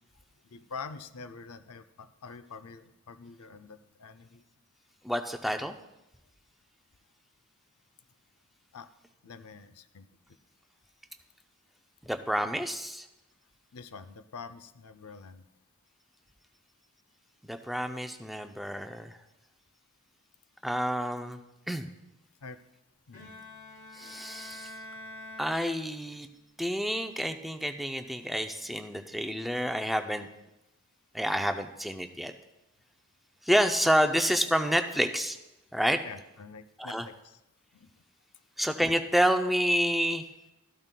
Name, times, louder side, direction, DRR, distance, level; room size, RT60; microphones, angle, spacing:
voice 1, 0.5-4.4 8.7-8.9 9.2-10.1 13.7-15.4 22.4-22.6 23.1-23.3 36.0-37.4 37.7-37.9, left 5 dB, 90° left, 12 dB, 0.5 m, -46 dB
voice 2, 5.0-5.8 12.0-13.1 17.4-19.2 20.6-21.4 21.7-21.9 23.9-24.7 25.4-26.3 26.6-30.3 31.1-32.3 33.4-35.4 35.7-36.0 36.8-37.1 38.6-40.2, equal, ahead, 6 dB, 0.4 m, -28 dB
Bowed string instrument, 23.1-26.3, left 1 dB, 40° left, 2.1 m, -46 dB
13.5 x 12.5 x 2.2 m, 0.93 s
head